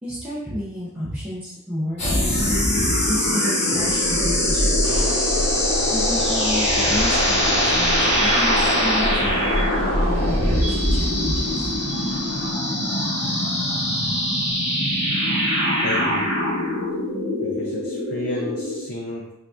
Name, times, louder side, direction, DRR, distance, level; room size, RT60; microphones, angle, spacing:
voice 1, 0.0-5.0 5.9-11.7, equal, 5° right, -9 dB, 0.6 m, -31 dB
sound 1, 2.0-18.8, left 1 dB, 30° left, 1.2 m, -22 dB
sound 2, 4.8-12.5, right 3 dB, 90° right, 0.7 m, -34 dB
voice 2, 15.8-16.3 17.4-19.3, left 1 dB, 50° left, -2 dB, 0.5 m, -32 dB
5.5 x 2.5 x 2.4 m, 0.86 s
head